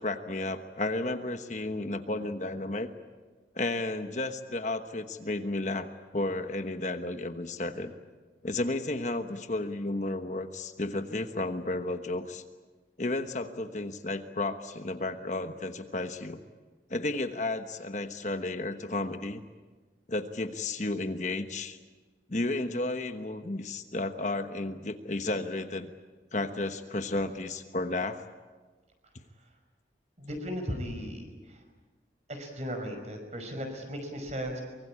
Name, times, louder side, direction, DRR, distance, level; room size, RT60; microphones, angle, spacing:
voice 1, 0.0-2.9 3.5-7.9 8.4-12.4 13.0-16.4 16.9-19.4 20.1-21.8 22.3-25.9 26.3-28.2, left 2 dB, 40° left, 7 dB, 1.2 m, -32 dB
voice 2, 30.2-31.6 32.3-34.6, equal, 40° right, 5 dB, 5.5 m, -36 dB
24.0 x 23.5 x 8.7 m, 1.3 s
head